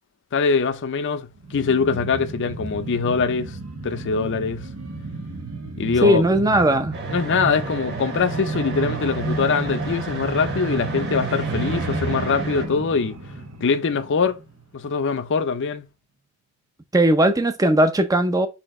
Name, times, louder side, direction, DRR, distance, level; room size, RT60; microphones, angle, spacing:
voice 1, 0.3-3.5 3.8-4.6 5.8-6.2 7.1-13.2 13.6-14.4 14.7-15.9, left 5 dB, 55° left, 0.5 m, -23 dB
sound 1, 1.4-14.6 14.9-15.0, right 3 dB, 80° right, 0.8 m, -31 dB
voice 2, 6.0-7.0 16.9-18.5, right 1 dB, 15° right, 0.5 m, -18 dB
sound 2, 6.9-12.7, right 4 dB, 50° right, 1.1 m, -34 dB
4.2 x 2.8 x 4.1 m
head